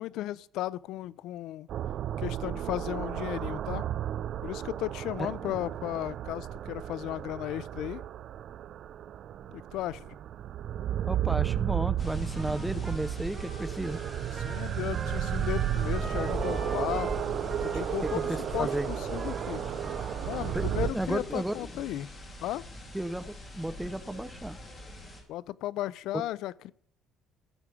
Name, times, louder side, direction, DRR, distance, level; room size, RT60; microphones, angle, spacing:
voice 1, 0.0-1.7 2.2-3.9 4.4-8.0 9.5-10.2 14.3-17.1 17.6-19.6 20.2-22.1 22.4-22.6 25.3-26.7, left 14 dB, 75° left, 0.4 m, -35 dB
sound 1, 1.7-20.9, right 11 dB, 55° right, 0.4 m, -33 dB
voice 2, 5.2-5.5 11.1-14.0 18.0-18.9 20.5-21.5 22.9-24.6, right 1 dB, 5° right, 0.6 m, -34 dB
sound 2, 12.0-25.2, equal, 30° left, 3.0 m, -41 dB
Trumpet, 12.3-20.6, right 3 dB, 30° right, 1.7 m, -45 dB
14.0 x 4.9 x 6.8 m
cardioid pair, 130°, 0 cm